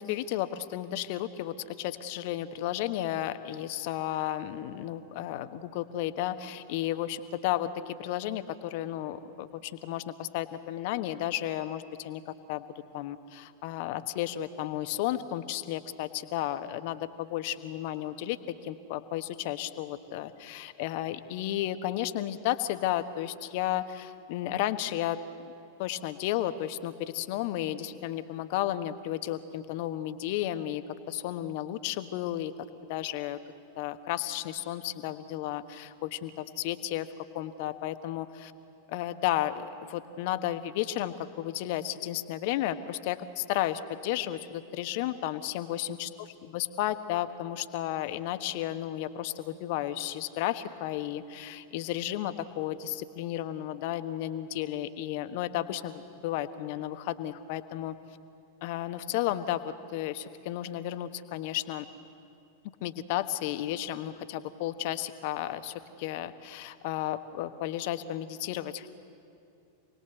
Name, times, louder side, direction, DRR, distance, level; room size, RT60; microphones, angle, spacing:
voice 1, 0.0-12.6 12.9-25.2 25.8-32.5 32.9-33.4 33.8-37.1 37.3-38.5 38.9-57.9 58.6-61.9 62.8-68.9, left 13 dB, 50° left, 11 dB, 1.2 m, -33 dB
27.5 x 20.0 x 7.9 m, 2.6 s
figure-of-eight pair, 90°, 0 cm